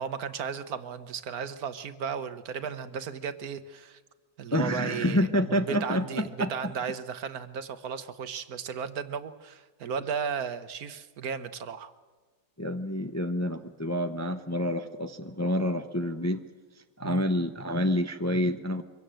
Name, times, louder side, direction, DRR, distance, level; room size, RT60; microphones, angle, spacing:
voice 1, 0.0-4.0 4.4-11.9 17.0-17.2, right 7 dB, 70° right, 11 dB, 1.5 m, -35 dB
voice 2, 4.5-6.7 12.6-16.4 17.0-18.8, left 1 dB, 15° left, 7 dB, 0.6 m, -28 dB
24.0 x 17.0 x 7.7 m, 1.4 s
omnidirectional pair, 1.6 m